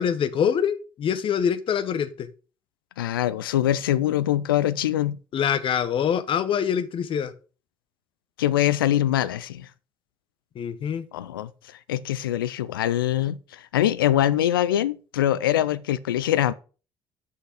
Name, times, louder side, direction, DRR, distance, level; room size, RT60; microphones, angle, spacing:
voice 1, 0.0-2.3 5.3-7.3 10.6-11.1, left 8 dB, 50° left, 0.9 m, -25 dB
voice 2, 3.0-5.2 8.4-9.7 11.1-16.5, left 12 dB, 85° left, 0.4 m, -23 dB
6.4 x 5.7 x 6.1 m
hypercardioid pair, 55°, 11 cm